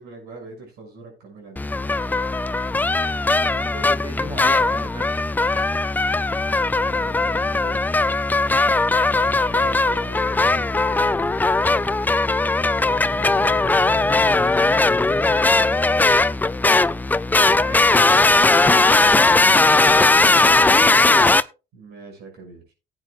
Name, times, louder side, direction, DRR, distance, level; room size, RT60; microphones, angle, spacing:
voice 1, 0.0-1.6 6.7-7.8 9.1-12.1 13.1-16.2 21.7-22.7, right 3 dB, 75° right, 3 dB, 6.5 m, -43 dB
sound 1, 1.6-21.4, left 3 dB, 10° left, 0.4 m, -18 dB
voice 2, 3.1-5.1 17.6-18.1 18.5-18.8 19.1-21.2, right 2 dB, 25° right, 7 dB, 2.5 m, -37 dB
18.0 x 8.8 x 2.4 m, 0.30 s
cardioid pair, 110°, 17 cm